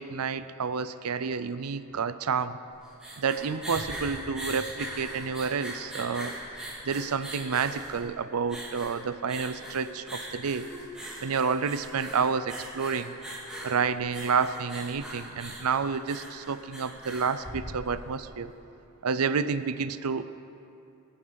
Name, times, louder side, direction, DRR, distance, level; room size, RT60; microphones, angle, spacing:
voice 1, 0.0-2.6 3.2-6.3 6.8-10.7 11.2-13.1 13.6-18.5 19.0-20.2, right 5 dB, 85° right, 12 dB, 0.5 m, -29 dB
sound 1, 2.7-18.2, right 1 dB, 5° right, 3.3 m, -40 dB
24.0 x 9.8 x 4.0 m, 2.7 s
head